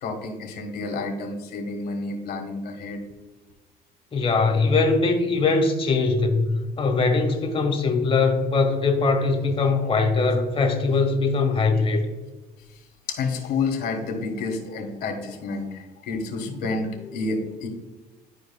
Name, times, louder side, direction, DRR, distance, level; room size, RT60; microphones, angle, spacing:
voice 1, 0.0-3.0 9.7-9.9 13.1-17.7, left 3 dB, 65° left, 4 dB, 1.6 m, -30 dB
voice 2, 4.1-12.1 16.4-16.6, left 3 dB, 35° left, 3 dB, 1.5 m, -21 dB
11.5 x 4.7 x 2.4 m, 1.2 s
cardioid pair, 110°, 17 cm